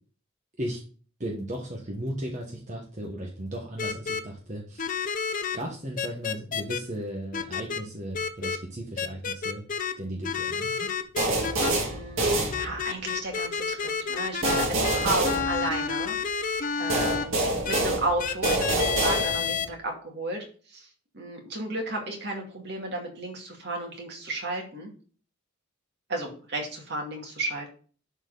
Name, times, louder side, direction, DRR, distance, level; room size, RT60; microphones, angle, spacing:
voice 1, 1.2-5.0 5.5-9.6 10.0-11.0, right 1 dB, 35° right, -1 dB, 1.3 m, -36 dB
sound 1, 3.8-4.2 4.8-5.6 6.0-6.8 7.3-7.8 8.1-8.6 9.0-9.9 10.2-11.7 12.5-17.2 17.6-17.8 18.2-19.7, left 6 dB, 40° left, 0.7 m, -29 dB
sound 2, 11.2-13.1 14.4-16.2 16.9-19.7, right 2 dB, 85° right, 2.1 m, -27 dB
voice 2, 11.3-20.4 20.7-20.9 21.1-24.9 26.1-27.7, right 2 dB, 55° right, 0 dB, 2.3 m, -33 dB
11.0 x 4.5 x 4.0 m, 0.41 s
head